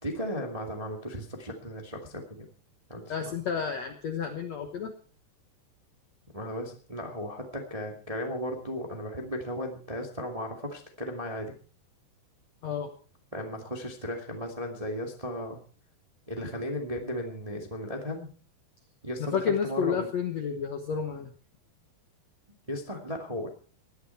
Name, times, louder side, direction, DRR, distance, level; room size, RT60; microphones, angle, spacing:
voice 1, 0.0-2.4 2.9-3.4 6.3-11.5 13.3-15.6 16.3-18.3 19.0-20.1 22.7-23.5, equal, 15° right, 2 dB, 1.2 m, -35 dB
voice 2, 3.1-4.9 12.6-12.9 19.2-21.3, left 7 dB, 70° left, 6 dB, 1.6 m, -31 dB
19.0 x 12.0 x 4.6 m, 0.41 s
omnidirectional pair, 4.8 m